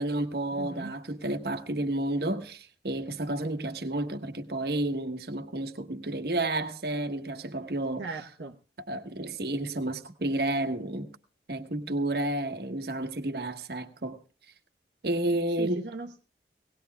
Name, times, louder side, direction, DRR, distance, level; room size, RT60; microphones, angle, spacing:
voice 1, 0.0-8.2 8.9-11.1 11.5-14.2 15.0-15.9, right 1 dB, 60° right, 1.2 m, -31 dB
voice 2, 0.5-1.0 8.0-8.6 15.3-16.2, right 3 dB, 85° right, 1.0 m, -39 dB
19.5 x 18.0 x 2.2 m
head